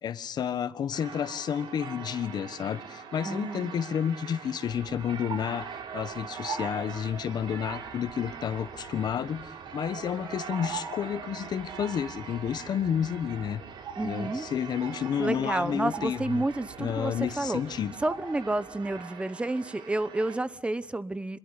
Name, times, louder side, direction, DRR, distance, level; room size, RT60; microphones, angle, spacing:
voice 1, 0.0-13.6 14.0-16.4 16.8-18.0, left 8 dB, 60° left, 1.3 m, -31 dB
sound 1, 0.9-20.4, right 6 dB, 85° right, 4.6 m, -43 dB
voice 2, 3.2-3.8 14.0-14.5 15.2-17.6 18.0-21.4, right 2 dB, 15° right, 1.0 m, -30 dB
sound 2, 4.7-19.0, right 5 dB, 60° right, 4.6 m, -44 dB
26.5 x 22.0 x 9.8 m
cardioid pair, 120°, 8 cm